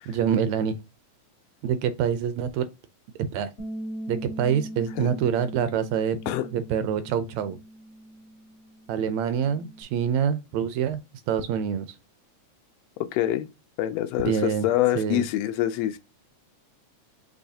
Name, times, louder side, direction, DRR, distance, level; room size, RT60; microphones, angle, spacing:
voice 1, 0.1-0.8 1.6-2.7 3.3-3.5 4.1-6.2 6.5-7.6 8.9-11.0 11.3-12.0 14.2-14.7 14.9-15.2, right 8 dB, 80° right, 1.7 m, -26 dB
Bass guitar, 3.6-9.8, right 1 dB, 55° left, 1.0 m, -40 dB
voice 2, 13.1-13.5 13.8-16.0, left 13 dB, 85° left, 1.4 m, -25 dB
6.3 x 3.1 x 2.7 m
omnidirectional pair, 3.4 m